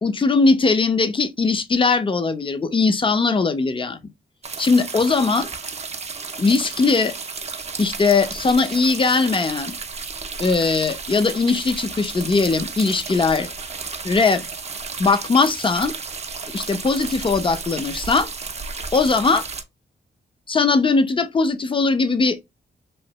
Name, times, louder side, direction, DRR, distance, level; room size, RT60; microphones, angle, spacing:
voice 1, 0.0-4.0 4.6-5.5 6.4-7.1 7.8-9.7 10.4-13.5 14.0-14.4 15.0-15.9 16.5-18.3 18.9-19.4 20.5-22.4, left 4 dB, 25° left, 0.5 m, -19 dB
sound 1, 4.4-19.6, right 4 dB, 35° right, 0.5 m, -33 dB
3.1 x 2.6 x 2.8 m
cardioid pair, 85°, 20 cm